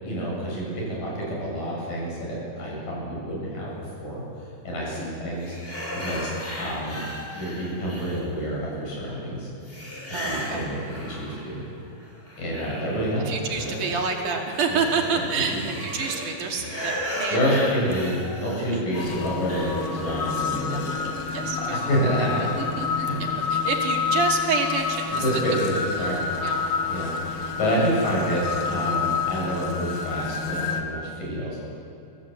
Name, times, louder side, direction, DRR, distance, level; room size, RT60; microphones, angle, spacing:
voice 1, 0.0-4.2 4.6-9.5 10.1-11.6 12.4-13.7 14.7-14.8 15.1-15.2 17.3-22.7 23.0-23.2 25.1-27.1 27.4-31.6, equal, 90° left, -4 dB, 9.3 m, -28 dB
sound 1, 5.4-8.6 9.7-11.7 12.0-20.5, equal, 15° left, 3.3 m, -36 dB
voice 2, 10.1-10.7 13.2-17.4 18.7-18.8 20.7-20.8 21.3-21.8 22.4-23.1 23.5-25.4 26.0-26.6 27.7-27.8, right 5 dB, 70° right, 1 dB, 3.7 m, -28 dB
sound 2, 18.9-30.8, left 5 dB, 50° left, 1.8 m, -28 dB
24.5 x 16.5 x 8.2 m, 2.8 s
omnidirectional pair, 3.7 m